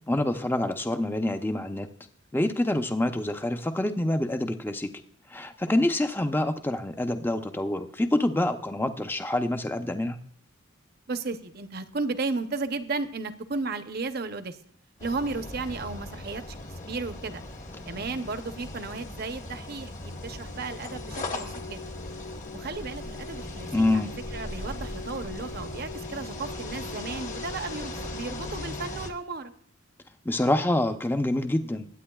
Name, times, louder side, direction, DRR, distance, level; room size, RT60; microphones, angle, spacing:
voice 1, 0.1-1.9 2.3-4.9 5.3-10.2 23.7-24.1 30.2-31.9, left 1 dB, 10° left, 8 dB, 0.6 m, -26 dB
voice 2, 11.1-14.6 15.0-16.4 16.8-17.4 17.9-21.8 22.5-29.5, right 3 dB, 50° right, 9 dB, 0.7 m, -34 dB
sound 1, 15.0-29.1, left 2 dB, 35° left, 1.2 m, -38 dB
sound 2, 20.1-29.2, left 2 dB, 70° left, 1.5 m, -44 dB
22.0 x 9.1 x 2.3 m, 0.66 s
head